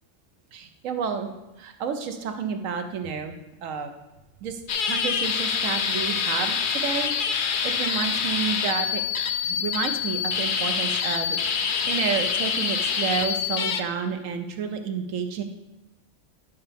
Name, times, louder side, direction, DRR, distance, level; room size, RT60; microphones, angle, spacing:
voice 1, 0.5-1.3 1.6-3.3 3.6-3.9 4.4-9.0 9.4-15.4, right 6 dB, 85° right, 6 dB, 1.2 m, -30 dB
sound 1, 4.7-13.8, left 6 dB, 55° left, 0.6 m, -26 dB
10.0 x 5.6 x 3.5 m, 1.0 s
omnidirectional pair, 1.3 m